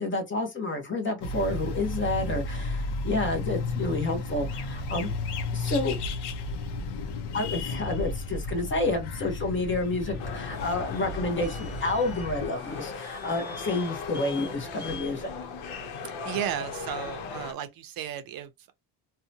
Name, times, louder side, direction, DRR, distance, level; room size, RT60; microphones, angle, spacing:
voice 1, 0.0-5.1 5.5-6.0 7.3-15.3, left 2 dB, 25° left, 0.9 m, -29 dB
sound 1, 1.2-12.5, left 2 dB, 60° left, 0.7 m, -33 dB
sound 2, 10.0-17.2, left 1 dB, 5° right, 0.9 m, -47 dB
sound 3, 10.2-17.5, left 5 dB, 85° left, 0.8 m, -38 dB
voice 2, 16.2-18.7, right 10 dB, 50° right, 0.6 m, -34 dB
2.7 x 2.2 x 2.6 m
cardioid pair, 140°, 46 cm